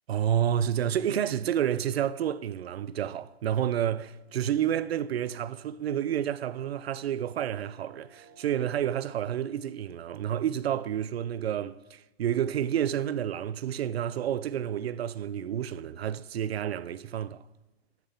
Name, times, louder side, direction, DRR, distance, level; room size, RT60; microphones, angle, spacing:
voice 1, 0.1-17.4, right 10 dB, 80° right, 0.6 m, -30 dB
sound 1, 4.0-9.3, right 1 dB, 20° left, 4.4 m, -59 dB
8.8 x 7.5 x 7.2 m
hypercardioid pair, 155°, 31 cm